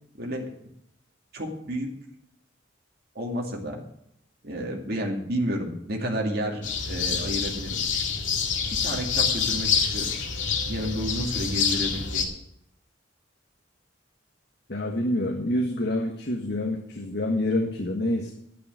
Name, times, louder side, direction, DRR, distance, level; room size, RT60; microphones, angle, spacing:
voice 1, 0.2-0.5 1.3-1.9 3.1-3.8 4.4-7.8 8.8-10.1 10.7-12.3, equal, 50° right, 0 dB, 2.4 m, -31 dB
sound 1, 6.6-12.2, left 6 dB, 70° left, 2.2 m, -27 dB
voice 2, 14.7-18.3, left 1 dB, 55° left, 2 dB, 1.6 m, -27 dB
11.5 x 10.0 x 6.3 m, 0.76 s
head